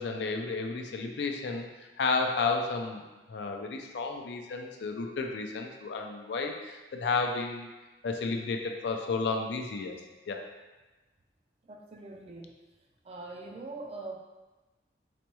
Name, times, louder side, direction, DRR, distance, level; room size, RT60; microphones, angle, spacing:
voice 1, 0.0-1.7 2.0-3.0 3.3-7.7 8.0-10.0 10.3-10.4, left 4 dB, 70° left, 3 dB, 0.4 m, -32 dB
voice 2, 11.7-12.5 13.0-14.2, right 3 dB, 35° right, 1 dB, 0.4 m, -42 dB
4.1 x 2.2 x 2.9 m, 1.1 s
head